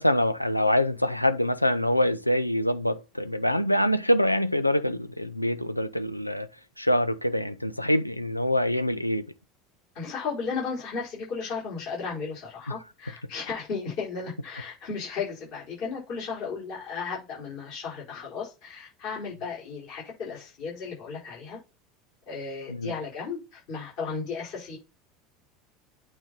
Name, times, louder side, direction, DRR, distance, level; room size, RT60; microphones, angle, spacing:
voice 1, 0.0-6.5 6.8-9.3 22.7-22.9, left 1 dB, 90° left, 0.5 m, -25 dB
voice 2, 9.9-21.6 22.3-24.8, left 5 dB, 50° left, 4.9 m, -35 dB
8.9 x 4.0 x 4.2 m
figure-of-eight pair, 75°, 0 cm